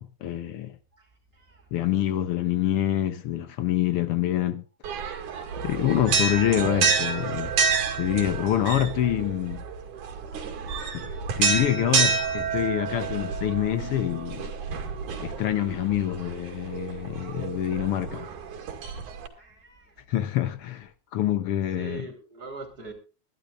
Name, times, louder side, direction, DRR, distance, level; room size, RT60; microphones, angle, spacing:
voice 1, 0.0-0.7 1.7-4.6 5.6-7.5 7.9-9.6 10.8-11.1 11.4-14.5 15.2-18.3 20.1-22.0, left 12 dB, 70° left, 1.3 m, -26 dB
voice 2, 0.9-1.7 15.0-15.1 15.4-15.7 19.3-20.1 21.7-22.9, right 3 dB, 30° right, 4.2 m, -43 dB
sound 1, 4.8-19.3, right 5 dB, 75° right, 3.5 m, -29 dB
22.0 x 12.0 x 2.4 m
omnidirectional pair, 3.5 m